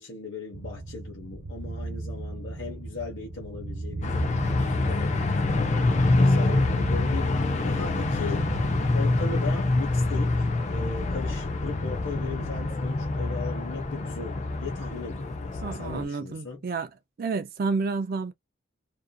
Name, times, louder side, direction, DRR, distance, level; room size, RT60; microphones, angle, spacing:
voice 1, 0.0-8.5 8.9-16.6, left 4 dB, 65° left, 0.8 m, -38 dB
sound 1, 0.5-9.8, right 2 dB, 65° right, 0.8 m, -36 dB
sound 2, 4.0-16.0, left 2 dB, 35° left, 0.5 m, -26 dB
voice 2, 15.6-16.9 17.2-18.3, right 4 dB, 50° right, 0.4 m, -30 dB
2.6 x 2.4 x 2.2 m
head